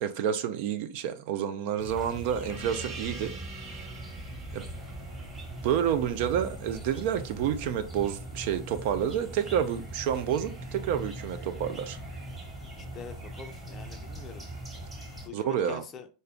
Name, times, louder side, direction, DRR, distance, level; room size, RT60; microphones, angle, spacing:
voice 1, 0.0-3.3 4.5-4.6 5.6-12.0 15.3-15.8, right 9 dB, 50° right, 0.4 m, -29 dB
sound 1, 1.8-15.3, right 1 dB, 10° right, 1.1 m, -41 dB
Gong, 2.5-7.5, right 3 dB, 30° right, 1.1 m, -46 dB
sound 2, 4.7-15.3, equal, 90° right, 1.5 m, -53 dB
voice 2, 12.8-14.5 15.3-16.1, left 6 dB, 25° left, 0.4 m, -44 dB
4.1 x 2.2 x 3.5 m
figure-of-eight pair, 90°, 0 cm